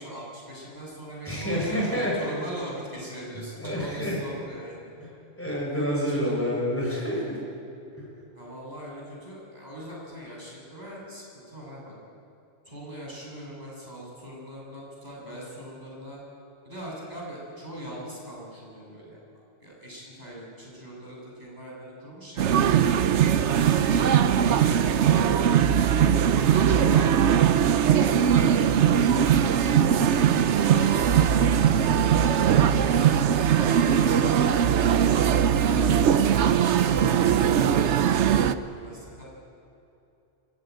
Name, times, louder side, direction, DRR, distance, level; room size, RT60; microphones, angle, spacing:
voice 1, 0.0-4.8 5.5-5.6 6.0-6.2 8.3-11.9 12.7-16.2 16.6-19.2 19.6-22.6 23.2-24.1 24.5-28.9 29.5-33.0 33.4-35.0 35.4-39.4, equal, 35° right, -4 dB, 7.2 m, -41 dB
voice 2, 1.3-2.1 3.6-4.2 5.4-7.4, equal, 10° left, -3 dB, 7.2 m, -28 dB
sound 1, 22.4-38.5, right 8 dB, 75° right, 1.0 m, -20 dB
24.5 x 15.5 x 9.5 m, 2.7 s
omnidirectional pair, 1.2 m